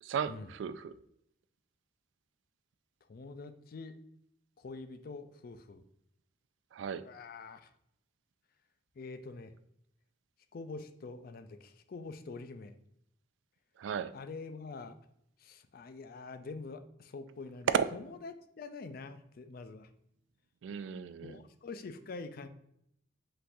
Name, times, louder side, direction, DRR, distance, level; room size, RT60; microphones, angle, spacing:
voice 1, 0.0-0.9 6.7-7.0 13.8-14.1 17.7-17.9 20.6-21.4, right 7 dB, 80° right, 13 dB, 0.3 m, -34 dB
voice 2, 3.1-4.0 4.6-5.8 7.0-7.7 9.0-9.5 10.5-12.7 14.1-15.0 15.4-19.9 21.2-22.5, left 3 dB, 55° left, 10 dB, 0.4 m, -45 dB
5.5 x 3.7 x 2.6 m, 0.75 s
head